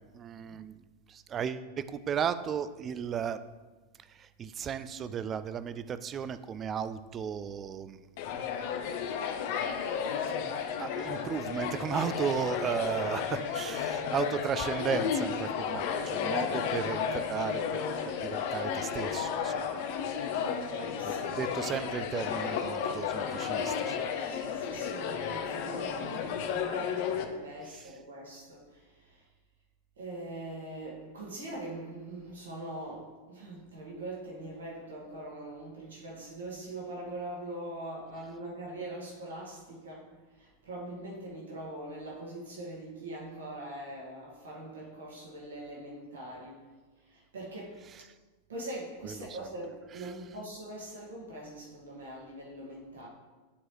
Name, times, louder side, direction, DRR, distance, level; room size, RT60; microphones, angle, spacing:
voice 1, 0.1-0.7 1.1-3.4 4.1-8.0 9.8-9.9 10.8-17.8 18.2-19.8 21.4-24.0 27.7-27.8 47.9-48.0 49.0-49.3 50.0-50.1, right 7 dB, 25° right, 13 dB, 0.3 m, -35 dB
sound 1, 8.2-27.2, left 7 dB, 50° left, 0.6 m, -33 dB
voice 2, 20.4-21.3 24.3-29.2 30.0-46.7 47.0-47.8 48.5-53.1, right 1 dB, 65° right, -4 dB, 1.9 m, -42 dB
9.8 x 4.6 x 3.1 m, 1.3 s
figure-of-eight pair, 90°, 0 cm